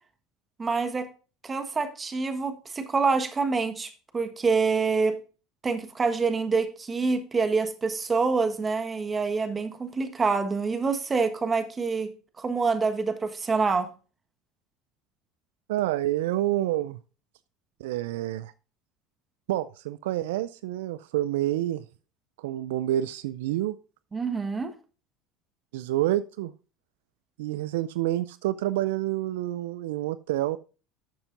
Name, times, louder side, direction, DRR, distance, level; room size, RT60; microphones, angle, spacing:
voice 1, 0.6-1.1 1.4-5.2 5.6-12.1 12.4-13.9 24.1-24.7, right 4 dB, 25° right, 8 dB, 1.4 m, -26 dB
voice 2, 15.7-17.0 17.8-18.5 19.5-21.8 22.4-23.8 25.7-26.5 27.4-30.6, right 14 dB, 80° right, 16 dB, 0.3 m, -28 dB
11.5 x 6.8 x 2.6 m, 0.35 s
hypercardioid pair, 85°, 0 cm